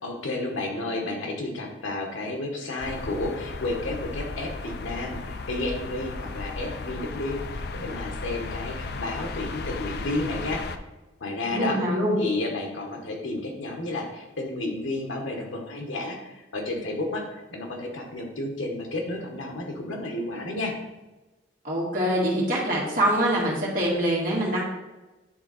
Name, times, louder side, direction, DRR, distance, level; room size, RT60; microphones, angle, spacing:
voice 1, 0.0-10.6 11.2-20.7, left 2 dB, 90° left, 1 dB, 1.4 m, -31 dB
sound 1, 2.8-10.8, left 3 dB, 55° left, 0.4 m, -35 dB
voice 2, 11.5-12.2 21.6-24.6, right 1 dB, 45° right, -4 dB, 2.1 m, -24 dB
9.3 x 3.7 x 4.2 m, 1.1 s
head